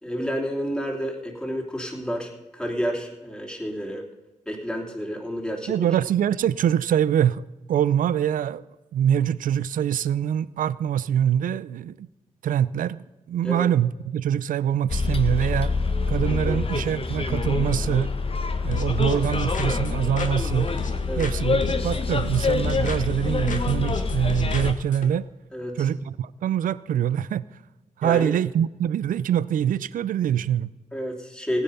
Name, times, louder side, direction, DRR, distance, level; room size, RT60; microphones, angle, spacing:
voice 1, 0.0-4.0 4.5-5.7 13.4-13.6 16.4-16.6 21.1-21.3 25.5-25.9 28.0-28.4 30.9-31.6, equal, 5° left, 3.1 m, -30 dB
voice 2, 5.7-8.6 8.9-12.1 12.4-15.7 16.1-18.1 18.6-20.7 21.2-25.3 25.8-27.5 28.0-30.7, right 9 dB, 75° right, 0.5 m, -24 dB
Bus, 14.9-24.7, left 4 dB, 40° left, 1.3 m, -26 dB
sound 1, 18.7-21.3 21.6-23.2 23.5-25.1, left 5 dB, 65° left, 1.6 m, -34 dB
16.0 x 10.0 x 5.6 m
supercardioid pair, 45°, 14 cm